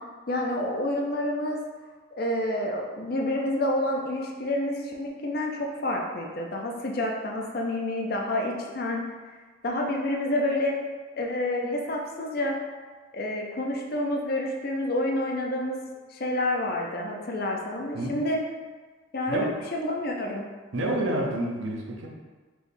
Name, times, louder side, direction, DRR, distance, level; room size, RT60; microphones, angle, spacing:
voice 1, 0.3-1.6 2.2-9.0 9.6-10.8 11.1-12.6 13.1-15.8 16.1-18.4 19.1-20.5, left 1 dB, 50° left, 0 dB, 0.5 m, -28 dB
voice 2, 20.7-22.1, right 1 dB, 75° right, 0 dB, 0.7 m, -28 dB
4.5 x 3.4 x 2.6 m, 1.4 s
head